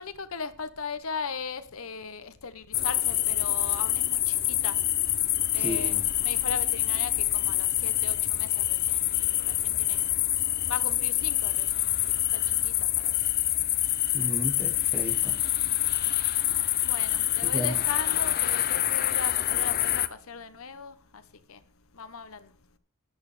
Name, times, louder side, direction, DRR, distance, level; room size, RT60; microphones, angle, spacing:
voice 1, 0.0-4.8 5.5-10.1 10.7-12.0 12.3-13.2 16.8-21.2 21.5-21.6 21.9-22.5, left 5 dB, 70° left, 1.0 m, -38 dB
sound 1, 2.7-20.1, left 13 dB, 45° left, 0.7 m, -26 dB
voice 2, 5.6-6.0 14.1-15.4 17.4-17.8, right 1 dB, 10° right, 1.3 m, -34 dB
13.0 x 11.5 x 3.4 m
head